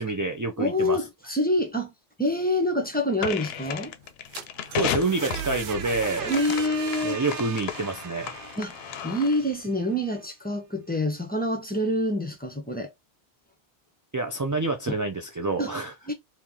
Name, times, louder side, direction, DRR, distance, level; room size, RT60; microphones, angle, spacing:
voice 1, 0.0-1.0 4.8-6.3 7.0-8.4 14.1-15.9, right 3 dB, 30° right, 0.3 m, -27 dB
voice 2, 0.6-1.9 2.2-3.9 6.2-7.2 8.6-8.7 9.0-12.9 14.9-15.0 15.6-15.7 16.1-16.2, left 1 dB, 10° left, 0.8 m, -26 dB
sound 1, 3.2-9.5, left 9 dB, 75° left, 0.8 m, -34 dB
sound 2, 4.1-9.9, right 7 dB, 60° right, 0.8 m, -38 dB
3.0 x 2.8 x 3.7 m
omnidirectional pair, 1.0 m